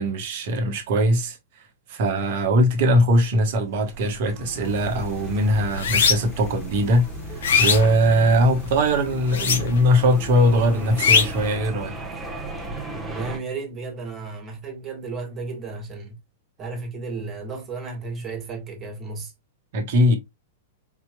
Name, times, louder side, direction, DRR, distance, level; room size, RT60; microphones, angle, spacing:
voice 1, 0.0-1.4 1.9-7.1 7.6-12.0 19.7-20.2, equal, 55° right, 1.1 m, -20 dB
sound 1, 3.6-13.4, right 2 dB, 10° right, 1.1 m, -35 dB
sound 2, 4.7-4.9 5.3-6.4 6.9-8.6 9.2-10.0 10.3-11.5, left 6 dB, 70° left, 0.7 m, -21 dB
voice 2, 13.1-16.2 16.6-19.3, right 4 dB, 30° right, 1.5 m, -33 dB
4.6 x 2.9 x 2.3 m
hypercardioid pair, 105°, 0 cm